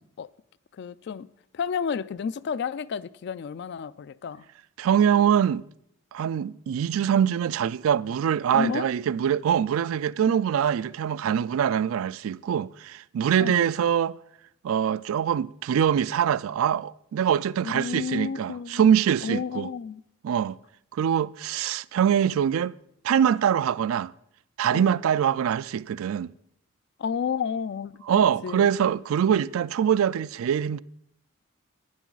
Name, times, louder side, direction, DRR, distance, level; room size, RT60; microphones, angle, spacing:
voice 1, 0.7-1.3 1.5-4.5 8.5-8.9 13.4-13.7 17.6-18.9 19.2-20.0 24.7-24.9 27.0-28.7, left 6 dB, 55° left, 0.3 m, -31 dB
voice 2, 4.8-5.6 6.1-14.2 14.6-19.7 20.2-20.6 20.9-22.7 23.0-24.1 24.6-26.3 28.1-30.8, right 8 dB, 80° right, 0.3 m, -24 dB
12.0 x 10.0 x 3.9 m
head